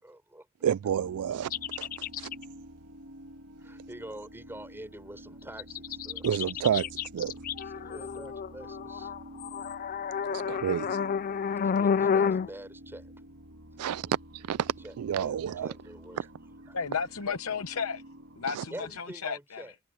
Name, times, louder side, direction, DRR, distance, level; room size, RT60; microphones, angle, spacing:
voice 1, 0.0-0.5 3.6-6.9 7.6-9.1 10.4-11.2 11.6-13.1 14.8-16.8 18.7-19.7, right 1 dB, 10° right, 6.7 m, -46 dB
voice 2, 0.6-1.5 1.8-1.9 2.2-2.3 6.2-6.8 7.1-7.3 10.3-11.0 13.8-15.7 18.5-18.6, right 9 dB, 85° right, 0.3 m, -29 dB
sound 1, 0.9-19.0, right 1 dB, 65° right, 1.8 m, -49 dB
sound 2, 1.5-2.4 5.6-12.5, left 6 dB, 40° left, 0.3 m, -30 dB
voice 3, 16.7-18.0 18.4-19.6, left 6 dB, 70° left, 0.8 m, -33 dB
head